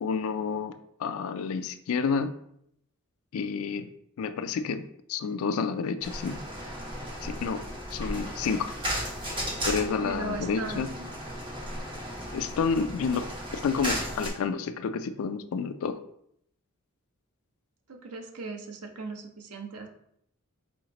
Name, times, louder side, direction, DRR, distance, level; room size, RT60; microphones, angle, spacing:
voice 1, 0.0-0.7 1.0-2.3 3.3-3.9 4.2-6.4 7.2-7.6 7.9-8.7 9.7-10.9 12.3-13.2 13.5-16.0, left 5 dB, 70° left, 10 dB, 0.3 m, -29 dB
sound 1, 6.0-14.3, equal, 20° right, 1.1 m, -35 dB
voice 2, 10.0-11.1 17.9-19.9, right 3 dB, 85° right, 4 dB, 0.7 m, -38 dB
5.4 x 2.8 x 2.9 m, 0.72 s
head